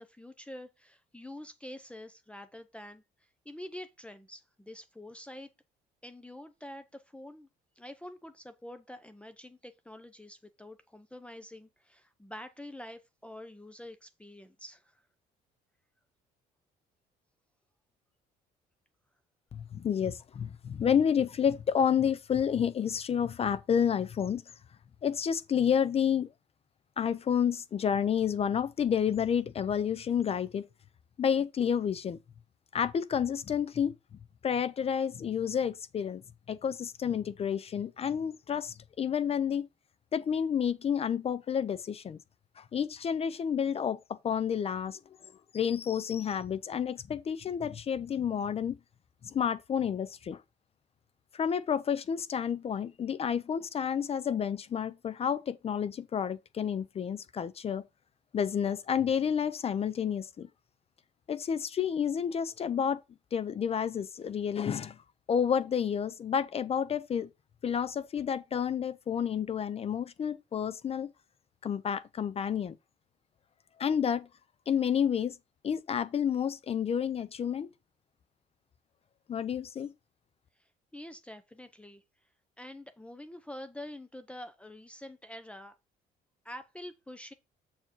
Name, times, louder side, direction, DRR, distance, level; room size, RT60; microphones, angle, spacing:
voice 1, 0.0-3.0 3.4-5.5 6.0-7.5 7.8-15.0 80.9-82.0 82.6-85.7 86.4-87.3, left 1 dB, 5° left, 0.8 m, -46 dB
voice 2, 19.5-24.4 25.0-26.3 27.0-30.6 31.2-32.2 32.7-34.0 34.4-36.2 36.5-39.7 40.1-42.2 42.6-48.8 49.2-50.4 51.3-57.8 58.3-60.5 61.3-63.0 63.3-65.0 65.3-67.3 67.6-71.1 71.6-72.8 73.8-74.3 74.7-75.4 75.6-77.7 79.3-79.9, left 8 dB, 35° left, 0.5 m, -30 dB
7.4 x 4.6 x 4.6 m
cardioid pair, 110°, 17 cm